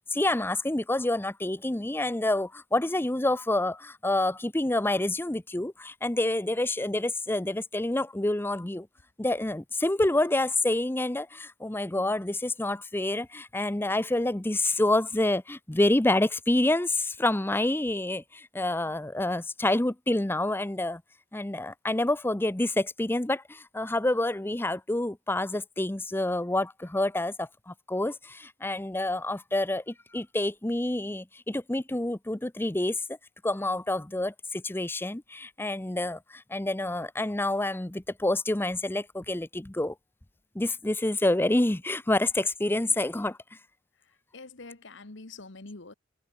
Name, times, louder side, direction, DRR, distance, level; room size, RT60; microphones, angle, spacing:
voice 1, 0.1-8.9 9.2-21.0 21.3-33.0 33.4-39.9 40.5-43.4, left 1 dB, 10° left, 0.6 m, -28 dB
voice 2, 44.0-45.9, left 3 dB, 65° left, 1.5 m, -46 dB
head